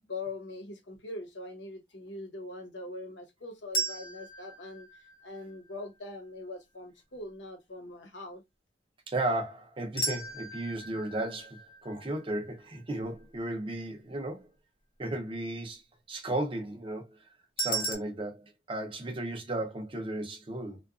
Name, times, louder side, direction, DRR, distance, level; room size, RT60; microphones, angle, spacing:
voice 1, 0.0-4.9 5.2-8.4, left 2 dB, 85° left, 0.9 m, -42 dB
sound 1, 3.7-5.8 10.0-13.1 17.6-17.9, right 2 dB, 50° left, 0.8 m, -36 dB
voice 2, 9.1-14.5 15.0-15.8 16.1-17.2 17.6-20.8, right 1 dB, 30° right, 0.6 m, -34 dB
2.8 x 2.2 x 2.3 m
head